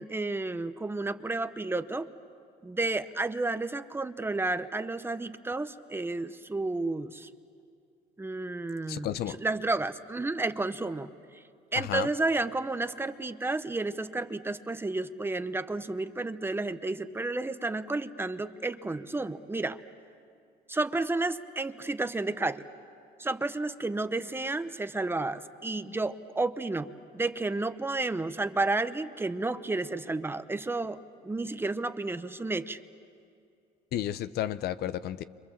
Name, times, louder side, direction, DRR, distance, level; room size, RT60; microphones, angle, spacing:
voice 1, 0.0-2.1 2.6-7.3 8.2-11.4 11.7-19.8 20.7-22.7 23.2-26.9 27.1-32.8, right 2 dB, 15° right, 10 dB, 0.8 m, -31 dB
voice 2, 8.9-9.4 11.7-12.1 33.9-35.2, left 12 dB, 70° left, 13 dB, 0.7 m, -32 dB
29.5 x 25.5 x 7.4 m, 2.4 s
cardioid pair, 110°, 17 cm